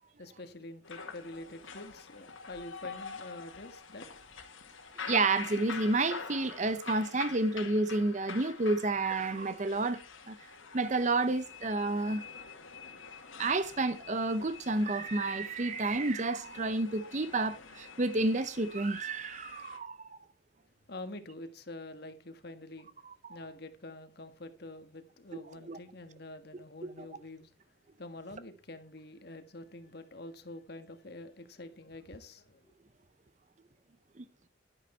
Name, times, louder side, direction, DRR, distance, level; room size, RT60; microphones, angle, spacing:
voice 1, 0.2-4.1 20.9-22.9 23.3-27.5 28.0-32.7, left 2 dB, 50° left, 1.6 m, -46 dB
sound 1, 0.8-19.8, left 5 dB, 75° left, 2.1 m, -46 dB
voice 2, 5.0-10.4 10.7-12.3 13.4-20.2 23.0-23.4 25.7-25.8 26.8-27.1 34.2-34.3, right 2 dB, 35° right, 0.6 m, -30 dB
11.5 x 9.7 x 4.3 m
head